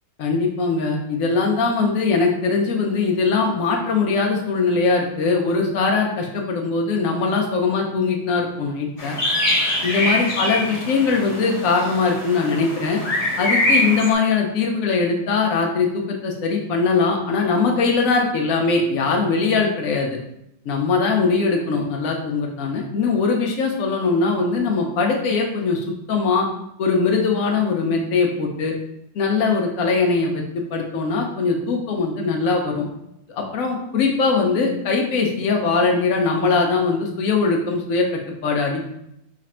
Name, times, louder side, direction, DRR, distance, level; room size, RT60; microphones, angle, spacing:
voice 1, 0.2-9.2 9.8-13.0 13.4-20.2 20.7-26.5 26.8-28.7 29.1-32.9 33.3-38.1 38.4-38.8, left 4 dB, 85° left, 0 dB, 0.7 m, -21 dB
sound 1, 9.0-14.1, left 1 dB, 25° left, 0.9 m, -23 dB
5.0 x 2.5 x 4.2 m, 0.79 s
omnidirectional pair, 2.3 m